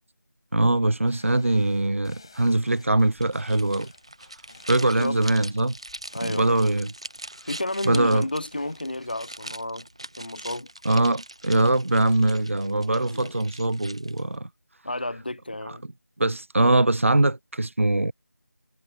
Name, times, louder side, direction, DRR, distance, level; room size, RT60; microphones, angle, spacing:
voice 1, 0.5-3.9 4.7-5.8 6.2-6.9 7.9-8.3 10.8-14.5 15.7-15.8 16.2-18.1, right 2 dB, 45° right, 0.6 m, -22 dB
sound 1, 0.9-9.4, left 4 dB, 15° left, 7.0 m, -55 dB
sound 2, 3.2-14.4, right 1 dB, 20° right, 0.9 m, -42 dB
voice 2, 4.7-5.5 6.1-6.6 7.5-9.9 10.2-10.7 11.0-11.2 13.1-13.3 14.8-15.9, left 1 dB, 30° left, 0.8 m, -32 dB
figure-of-eight pair, 180°, 10 cm